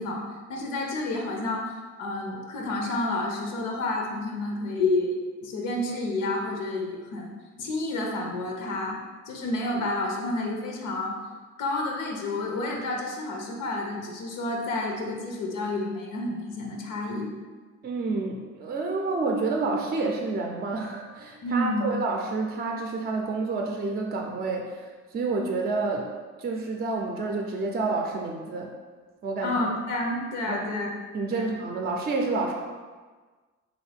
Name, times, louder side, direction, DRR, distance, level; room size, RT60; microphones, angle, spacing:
voice 1, 0.0-1.7 2.0-9.0 9.3-11.2 11.6-17.3 21.4-21.9 29.4-30.9 31.3-31.6, left 2 dB, 90° left, 0 dB, 0.6 m, -30 dB
voice 2, 17.8-24.9 25.1-26.1 26.4-28.7 29.2-29.6 30.5-30.6 31.1-32.5, right 3 dB, 30° right, 1 dB, 0.4 m, -29 dB
3.1 x 2.6 x 3.3 m, 1.4 s
cardioid pair, 90°, 30 cm